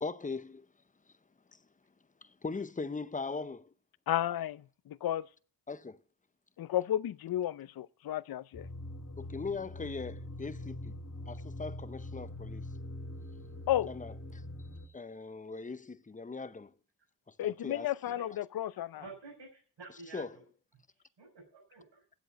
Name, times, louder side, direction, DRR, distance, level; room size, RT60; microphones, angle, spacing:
voice 1, 0.0-0.7 2.2-3.7 5.7-6.0 9.2-10.9 11.3-12.7 13.9-14.4 14.9-16.7 17.3-17.9 19.9-20.4, left 4 dB, 15° left, 0.7 m, -40 dB
voice 2, 4.1-5.3 6.6-8.7 13.7-13.9 17.4-19.0, left 12 dB, 50° left, 0.6 m, -33 dB
sound 1, 8.5-14.9, left 1 dB, 35° left, 2.8 m, -43 dB
voice 3, 19.0-20.4 21.2-22.0, right 4 dB, 65° right, 6.2 m, -50 dB
10.0 x 7.9 x 9.2 m
cardioid pair, 60°, 46 cm